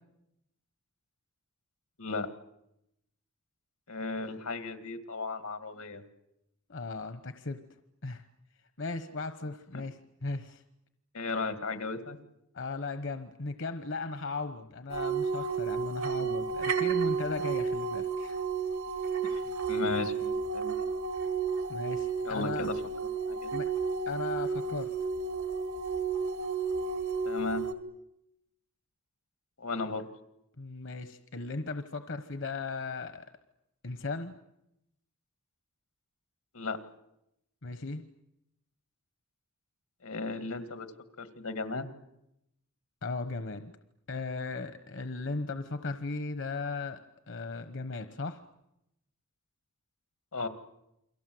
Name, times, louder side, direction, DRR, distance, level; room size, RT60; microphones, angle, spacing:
voice 1, 3.9-6.0 9.7-9.8 11.1-12.2 16.2-16.4 16.8-16.9 19.3-20.9 22.2-22.8 23.3-23.5 27.3-27.6 29.6-30.1 36.5-36.8 40.0-40.9 41.2-41.9 50.3-50.5, left 3 dB, 85° left, 9 dB, 2.1 m, -35 dB
voice 2, 6.7-7.6 8.0-8.3 8.8-10.6 12.5-18.4 21.7-22.7 23.5-23.7 24.1-24.9 30.6-33.3 33.8-34.3 37.6-38.0 43.0-43.7 44.1-47.0 47.3-48.4, left 3 dB, 60° left, 9 dB, 1.1 m, -37 dB
sound 1, 14.9-27.7, right 5 dB, 80° right, 2.3 m, -32 dB
29.5 x 23.5 x 7.8 m, 0.85 s
head